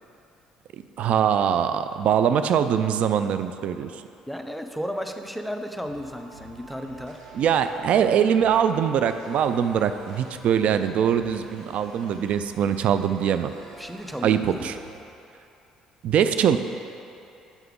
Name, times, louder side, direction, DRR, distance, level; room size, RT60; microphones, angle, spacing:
voice 1, 1.0-3.9 7.3-13.5 14.2-14.7 16.0-16.6, right 8 dB, 55° right, 10 dB, 0.3 m, -22 dB
voice 2, 4.3-7.2 13.8-14.7, equal, ahead, 5 dB, 0.5 m, -34 dB
sound 1, 5.8-15.0, right 2 dB, 80° right, 0.8 m, -47 dB
7.1 x 5.6 x 3.6 m, 2.7 s
hypercardioid pair, 50°, 3 cm